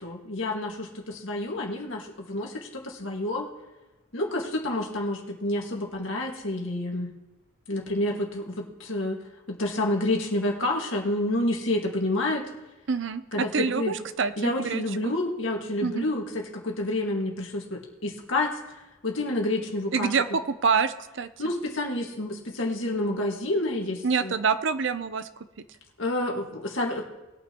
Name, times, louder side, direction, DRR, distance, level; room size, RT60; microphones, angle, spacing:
voice 1, 0.0-2.0 2.3-2.5 3.0-3.5 4.1-7.1 7.7-9.2 9.5-12.4 13.3-14.0 14.4-18.5 19.0-20.1 21.4-24.3 26.0-27.0, left 1 dB, 70° left, 0 dB, 1.9 m, -28 dB
voice 2, 12.9-15.1 15.8-16.1 19.9-21.3 24.0-25.3, right 5 dB, 60° right, 12 dB, 0.6 m, -26 dB
19.5 x 9.1 x 3.0 m, 1.1 s
head